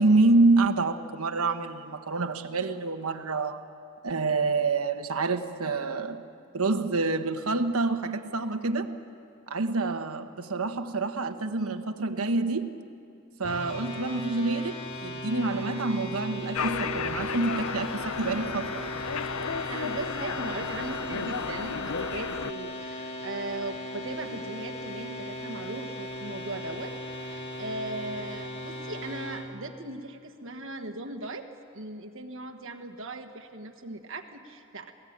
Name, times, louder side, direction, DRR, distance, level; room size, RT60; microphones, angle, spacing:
voice 1, 0.0-3.6 4.0-6.2 6.5-9.0 9.5-12.7 13.4-14.8 15.0-18.9, right 3 dB, 80° right, 8 dB, 1.3 m, -27 dB
sound 1, 13.4-29.5, equal, 30° left, 3.2 m, -38 dB
sound 2, 16.5-22.5, left 6 dB, 75° left, 0.7 m, -33 dB
voice 2, 19.7-34.9, right 2 dB, 60° right, 6 dB, 1.4 m, -38 dB
27.0 x 18.5 x 8.8 m, 2.4 s
head